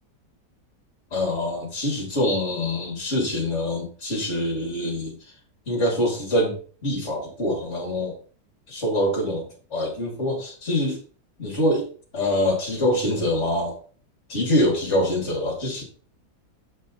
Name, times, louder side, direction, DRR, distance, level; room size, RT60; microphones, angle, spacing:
voice 1, 1.1-5.1 5.7-6.6 6.8-8.2 8.7-11.0 11.4-11.9 12.1-13.8 14.3-15.8, left 1 dB, 40° left, -2 dB, 3.1 m, -24 dB
7.4 x 5.4 x 4.1 m, 0.41 s
omnidirectional pair, 1.9 m